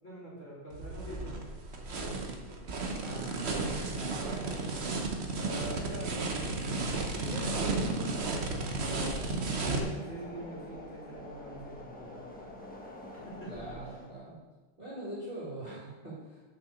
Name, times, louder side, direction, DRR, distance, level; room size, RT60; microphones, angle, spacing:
voice 1, 0.0-2.6 3.0-3.6 5.3-6.8 7.1-9.3 9.6-12.6 13.1-13.9, equal, 30° left, -7 dB, 3.0 m, -44 dB
sound 1, 0.7-9.8, right 3 dB, 50° right, 0.7 m, -33 dB
sound 2, 2.6-14.1, left 1 dB, 5° left, 0.7 m, -50 dB
voice 2, 3.0-5.0 13.4-14.4 14.8-16.4, right 1 dB, 25° right, -9 dB, 2.4 m, -43 dB
6.8 x 5.8 x 6.6 m, 1.2 s
omnidirectional pair, 2.4 m